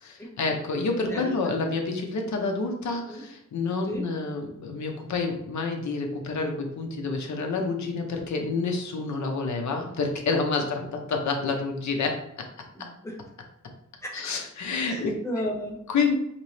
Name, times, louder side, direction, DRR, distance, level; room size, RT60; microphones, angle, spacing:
voice 1, 0.0-12.2 14.1-15.1 15.9-16.2, left 4 dB, 65° left, 2 dB, 0.7 m, -28 dB
voice 2, 12.7-13.2 14.0-14.3 14.9-15.8, equal, 10° left, -2 dB, 0.8 m, -33 dB
4.1 x 2.9 x 3.2 m, 0.77 s
wide cardioid pair, 150°, 31 cm